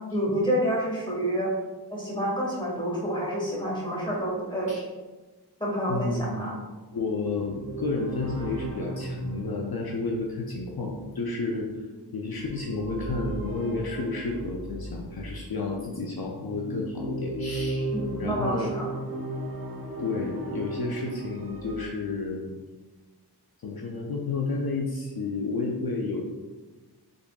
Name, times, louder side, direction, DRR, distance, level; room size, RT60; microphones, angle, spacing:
voice 1, 0.1-1.5 1.9-4.7 5.6-6.6 17.9-18.9, equal, 10° left, -4 dB, 1.2 m, -28 dB
voice 2, 5.9-6.4 6.9-11.7 12.1-18.7 20.0-22.5 23.6-26.2, left 3 dB, 60° left, -1 dB, 0.5 m, -31 dB
sound 1, 7.0-15.5 16.2-21.9, right 1 dB, 30° right, 0.9 m, -36 dB
3.7 x 3.7 x 2.3 m, 1.2 s
wide cardioid pair, 55°, 42 cm